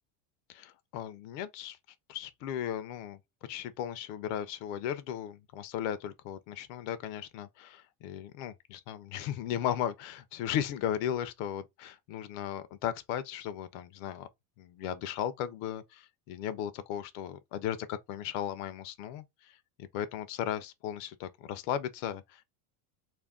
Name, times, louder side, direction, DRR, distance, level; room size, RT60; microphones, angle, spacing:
voice 1, 0.5-1.8 2.1-3.2 3.5-14.3 14.6-22.4, left 10 dB, 50° left, 0.5 m, -36 dB
2.5 x 2.2 x 3.4 m
supercardioid pair, 135°, 46 cm